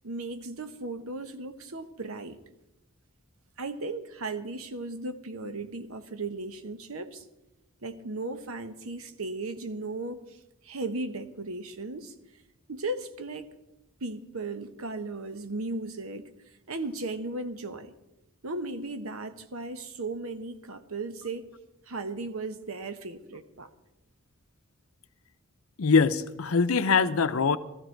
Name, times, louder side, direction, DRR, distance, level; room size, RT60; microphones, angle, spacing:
voice 1, 0.0-2.4 3.6-7.2 7.8-12.1 12.7-13.5 14.0-16.3 16.7-17.9 18.4-21.5 21.9-23.7, right 2 dB, 70° right, 1.0 m, -36 dB
voice 2, 25.8-27.6, left 5 dB, 70° left, 0.7 m, -23 dB
15.5 x 14.0 x 4.5 m
head